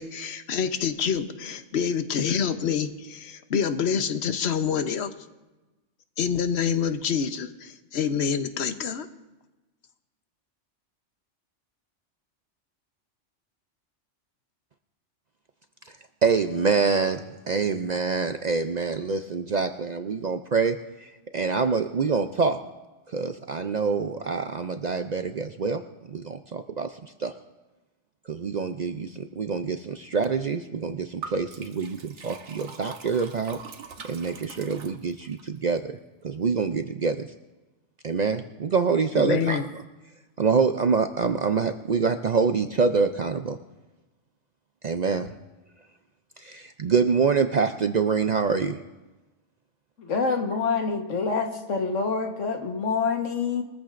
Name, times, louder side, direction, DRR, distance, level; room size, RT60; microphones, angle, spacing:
voice 1, 0.0-5.1 6.2-9.1 39.1-39.6, left 7 dB, 65° left, 9 dB, 1.0 m, -27 dB
voice 2, 16.2-21.1 21.3-22.6 23.1-25.8 26.1-27.3 28.3-33.6 34.0-36.0 36.2-37.3 38.0-39.7 40.4-43.6 44.8-45.3 46.4-48.8, right 5 dB, 55° right, 7 dB, 0.5 m, -26 dB
Liquid, 31.2-35.4, right 5 dB, 75° right, 1.3 m, -43 dB
voice 3, 50.0-53.6, left 5 dB, 85° left, 4 dB, 1.7 m, -26 dB
22.5 x 14.5 x 2.5 m, 1.1 s
omnidirectional pair, 1.2 m